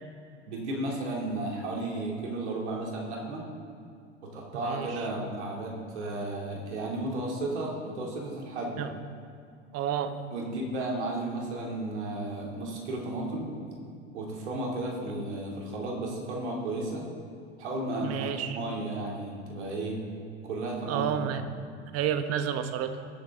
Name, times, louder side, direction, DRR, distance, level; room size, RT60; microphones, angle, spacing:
voice 1, 0.5-3.4 4.3-8.8 10.3-13.7 14.1-17.0 17.6-20.0 20.4-21.4, right 2 dB, 80° right, -2 dB, 2.8 m, -33 dB
voice 2, 9.7-10.1 18.0-18.6 20.9-21.4 21.9-23.1, right 9 dB, 45° right, 10 dB, 1.0 m, -30 dB
20.0 x 7.5 x 3.7 m, 2.3 s
hypercardioid pair, 85°, 34 cm